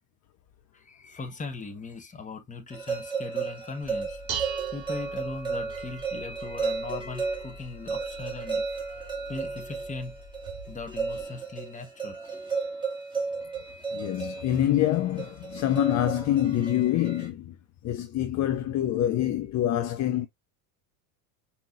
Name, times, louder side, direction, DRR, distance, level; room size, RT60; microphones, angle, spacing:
voice 1, 0.7-4.2 4.7-8.6 9.3-10.2 10.7-12.2, left 3 dB, 15° left, 1.1 m, -39 dB
sound 1, 2.7-17.3, right 4 dB, 10° right, 2.0 m, -34 dB
Dishes pots and pans, 3.8-11.2, right 6 dB, 60° right, 2.3 m, -42 dB
voice 2, 13.9-17.6 17.8-20.3, left 12 dB, 35° left, 0.6 m, -26 dB
5.5 x 2.9 x 2.5 m
supercardioid pair, 100°, 47 cm